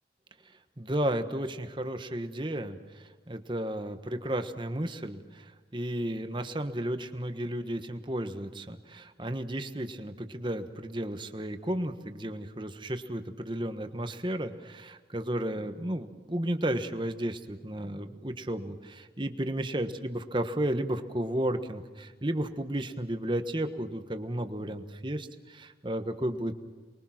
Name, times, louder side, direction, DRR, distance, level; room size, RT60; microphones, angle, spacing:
voice 1, 0.8-26.5, right 1 dB, 25° right, 8 dB, 1.4 m, -33 dB
29.0 x 22.0 x 6.0 m, 1.4 s
head